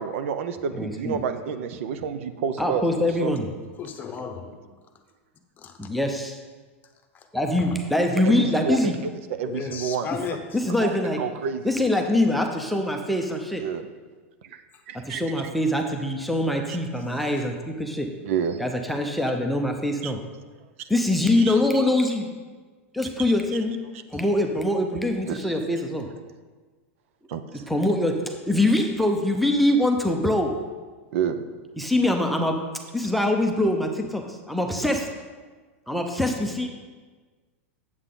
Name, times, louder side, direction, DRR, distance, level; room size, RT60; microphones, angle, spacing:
voice 1, 0.0-2.8 3.2-3.3 8.2-8.9 9.3-10.1 10.8-11.7 13.6-13.9 14.4-15.5 16.7-16.8 18.2-18.6 20.0-20.1 21.4-21.6 23.2-23.3 25.3-25.4 27.3-27.6 31.1-31.4, right 7 dB, 70° right, 10 dB, 0.7 m, -29 dB
voice 2, 0.7-1.2 2.6-3.5 5.8-6.4 7.3-9.0 10.5-11.2 11.6-13.6 14.9-18.1 18.6-20.2 20.9-22.3 22.9-23.8 24.1-26.1 27.7-30.5 31.8-32.6 32.9-35.1 35.9-36.7, left 1 dB, ahead, 3 dB, 0.7 m, -23 dB
voice 3, 3.8-4.6 5.6-5.8 7.1-7.3 7.6-7.7 9.5-10.6 14.7-14.8 17.3-17.5, left 6 dB, 25° left, 5 dB, 1.0 m, -35 dB
8.0 x 7.6 x 3.8 m, 1.4 s
supercardioid pair, 130°, 7 cm